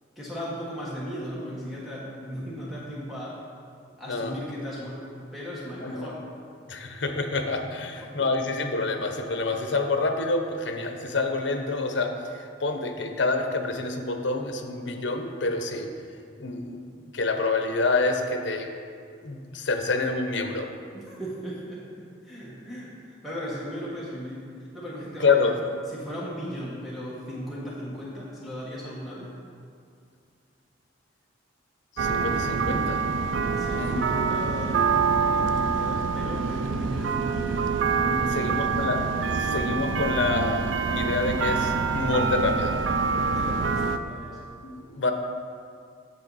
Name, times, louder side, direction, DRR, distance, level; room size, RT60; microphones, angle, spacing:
voice 1, 0.2-3.4 4.0-5.1 5.3-6.2 7.8-8.3 20.9-25.6 25.9-29.3 33.6-37.7 38.0-38.7 43.1-44.5, equal, ahead, -8 dB, 1.2 m, -37 dB
voice 2, 6.7-15.9 16.4-18.7 19.2-20.7 25.2-25.5 32.0-33.0 33.7-34.1 38.3-39.0 39.4-42.8 44.6-45.1, left 3 dB, 70° left, 5 dB, 0.8 m, -27 dB
sound 1, 32.0-44.0, right 5 dB, 85° right, 0.4 m, -26 dB
8.7 x 6.9 x 4.0 m, 2.2 s
head